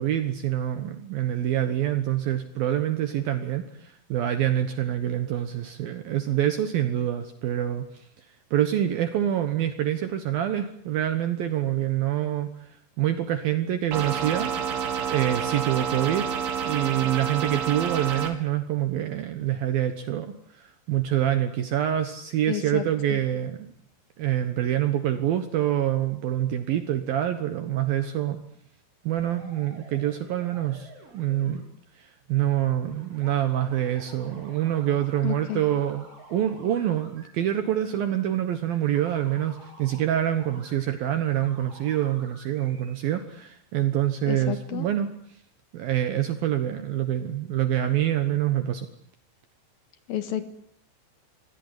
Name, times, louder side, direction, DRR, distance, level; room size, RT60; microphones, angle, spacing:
voice 1, 0.0-8.3 8.5-14.5 15.1-16.3 16.6-23.7 24.2-28.4 29.0-31.6 31.9-45.1 45.7-48.9, right 11 dB, 65° right, 9 dB, 2.6 m, -26 dB
sound 1, 13.9-18.3, right 7 dB, 90° right, 5.3 m, -29 dB
voice 2, 22.5-22.8 23.1-23.2 35.2-35.6 44.3-44.9 50.1-50.5, left 11 dB, 65° left, 11 dB, 2.8 m, -30 dB
sound 2, 29.2-31.6 32.9-37.3 37.7-38.0 38.7-43.2, right 2 dB, 30° right, 6.2 m, -50 dB
26.0 x 17.5 x 9.9 m, 0.66 s
omnidirectional pair, 5.4 m